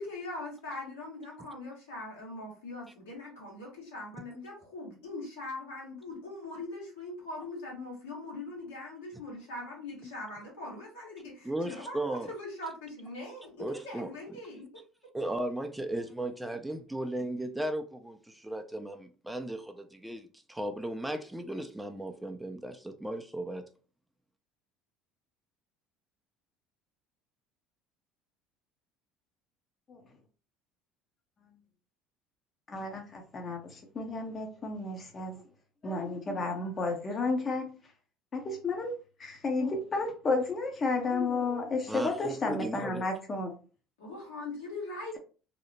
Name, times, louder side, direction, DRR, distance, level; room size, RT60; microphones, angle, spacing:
voice 1, 0.0-14.8 44.0-45.2, left 2 dB, 85° left, 1.4 m, -41 dB
voice 2, 11.4-12.3 13.6-14.1 15.1-23.7 41.9-43.0, right 1 dB, 5° right, 0.4 m, -36 dB
voice 3, 32.7-35.4 35.8-37.7 38.3-43.5, left 3 dB, 35° left, 0.6 m, -32 dB
2.8 x 2.0 x 2.8 m
hypercardioid pair, 70°, 0 cm